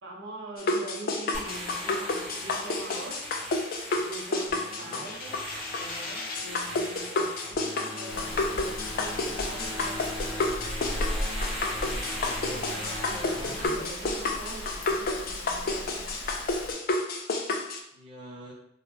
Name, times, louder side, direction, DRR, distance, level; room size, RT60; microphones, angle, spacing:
voice 1, 0.0-3.3 3.9-5.4 5.8-10.5 12.5-16.4, right 2 dB, 60° right, -2 dB, 0.7 m, -43 dB
sound 1, 0.6-17.8, left 2 dB, 45° left, 0.4 m, -31 dB
sound 2, 1.3-13.7, equal, ahead, 1.2 m, -39 dB
Rain, 8.1-16.7, left 1 dB, 85° left, 0.8 m, -37 dB
voice 2, 11.8-12.7 13.3-13.8 17.9-18.5, equal, 25° right, -5 dB, 0.7 m, -44 dB
2.9 x 2.3 x 3.4 m, 0.74 s
head